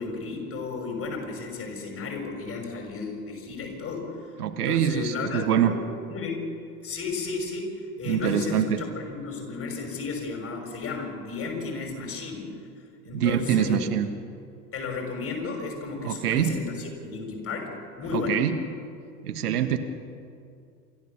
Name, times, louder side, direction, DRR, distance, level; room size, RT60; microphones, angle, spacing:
voice 1, 0.0-4.1 4.5-5.8 6.1-6.4 6.8-7.7 8.0-12.5 13.0-13.8 14.7-17.7 18.0-18.4, left 4 dB, 30° left, 2 dB, 6.0 m, -33 dB
voice 2, 4.4-5.8 8.0-8.8 13.1-14.1 16.0-16.6 18.1-18.5 19.2-19.8, right 9 dB, 70° right, 8 dB, 1.5 m, -24 dB
28.0 x 13.5 x 7.0 m, 2.4 s
figure-of-eight pair, 80°, 48 cm